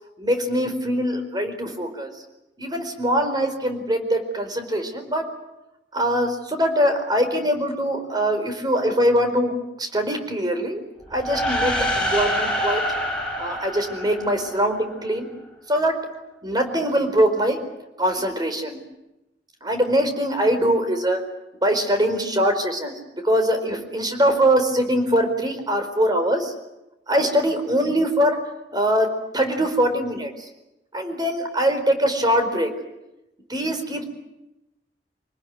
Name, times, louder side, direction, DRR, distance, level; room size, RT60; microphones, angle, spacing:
voice 1, 0.2-2.1 2.6-5.3 5.9-9.5 9.8-10.8 11.1-12.8 13.4-15.3 15.7-16.1 16.4-17.6 18.0-18.8 19.6-21.2 21.6-26.5 27.1-28.4 28.7-30.5 30.9-32.7 33.5-34.0, equal, 25° right, 7 dB, 4.5 m, -22 dB
sound 1, 11.1-14.8, equal, 5° left, 7.0 m, -26 dB
26.5 x 19.5 x 9.6 m, 0.94 s
head